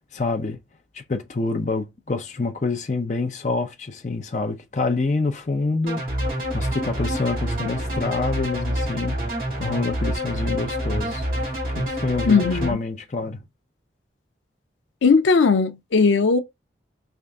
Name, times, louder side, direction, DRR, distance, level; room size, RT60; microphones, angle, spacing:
voice 1, 0.1-0.6 0.9-13.4, left 3 dB, 40° left, 0.5 m, -27 dB
sound 1, 5.9-12.7, equal, 50° right, 2.1 m, -27 dB
voice 2, 12.3-12.8 15.0-16.4, left 4 dB, 90° left, 0.5 m, -18 dB
3.4 x 2.5 x 3.6 m
head